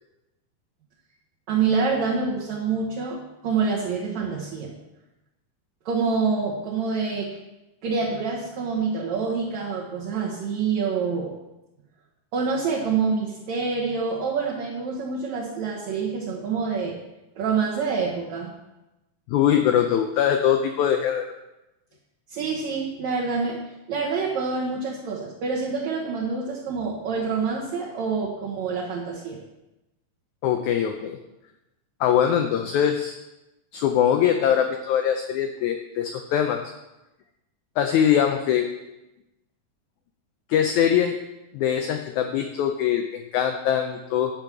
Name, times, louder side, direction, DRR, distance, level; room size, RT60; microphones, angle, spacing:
voice 1, 1.5-4.7 5.9-7.4 7.8-11.3 12.3-17.0 17.4-18.5 22.3-23.6 23.9-29.4, right 5 dB, 60° right, -4 dB, 2.3 m, -26 dB
voice 2, 19.3-21.2 30.4-31.2 32.0-33.1 33.7-36.6 37.8-38.7 40.5-41.2 41.5-44.3, left 9 dB, 90° left, 6 dB, 1.6 m, -22 dB
10.0 x 5.3 x 7.4 m, 0.97 s
omnidirectional pair, 4.2 m